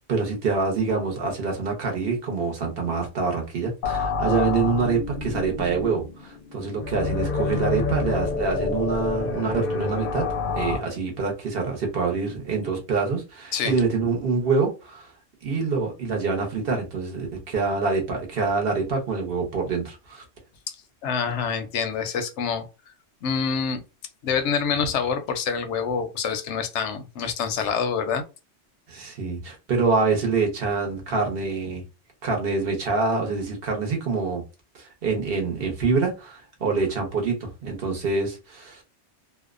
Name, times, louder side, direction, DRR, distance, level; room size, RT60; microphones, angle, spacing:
voice 1, 0.0-10.3 10.6-15.1 15.4-20.2 28.9-31.8 32.2-34.4 34.8-38.8, right 4 dB, 60° right, 0.9 m, -26 dB
sound 1, 3.8-10.8, left 4 dB, 60° left, 0.6 m, -28 dB
voice 2, 21.0-22.6 23.2-23.8 24.2-28.2, left 6 dB, 80° left, 0.9 m, -26 dB
2.6 x 2.1 x 2.4 m
omnidirectional pair, 1.2 m